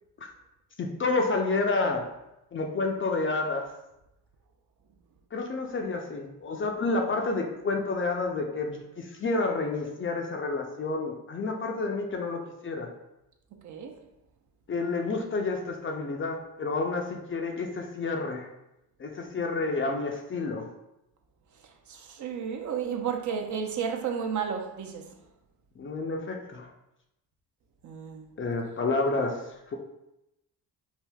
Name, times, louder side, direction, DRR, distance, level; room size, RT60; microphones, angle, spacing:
voice 1, 0.8-2.1 2.5-3.6 5.3-12.9 14.7-18.5 19.0-20.7 25.8-26.7 28.4-29.7, left 3 dB, 30° left, 0.4 m, -29 dB
voice 2, 13.6-14.0 19.4-19.6 21.6-25.1 27.8-28.3, right 7 dB, 45° right, 0.5 m, -33 dB
3.3 x 2.5 x 2.3 m
supercardioid pair, 60°, 41 cm